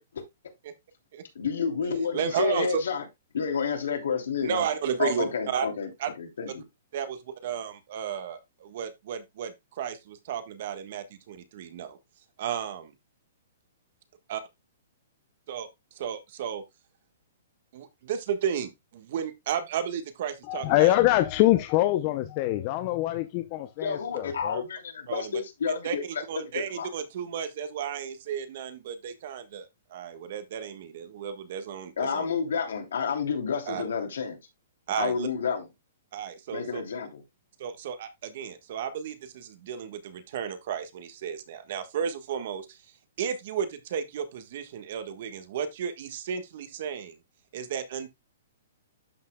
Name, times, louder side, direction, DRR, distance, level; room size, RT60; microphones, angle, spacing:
voice 1, 1.3-3.0 3.3-4.7 5.0-5.9 6.2-6.6 23.8-26.9 32.0-34.4 35.0-35.7 36.5-37.2, left 6 dB, 80° left, 3.0 m, -30 dB
voice 2, 2.1-2.8 4.4-5.7 6.0-6.1 6.9-12.0 12.4-12.9 14.3-14.4 15.5-15.7 16.0-16.6 17.7-20.9 25.1-25.3 25.8-26.0 26.3-32.2 33.7-33.8 34.9-35.3 36.1-36.8 37.6-42.8 43.2-47.1 47.5-48.1, right 8 dB, 50° right, 1.4 m, -33 dB
voice 3, 20.5-24.6, left 15 dB, 30° left, 0.6 m, -24 dB
12.0 x 5.6 x 2.3 m
hypercardioid pair, 165°, 0 cm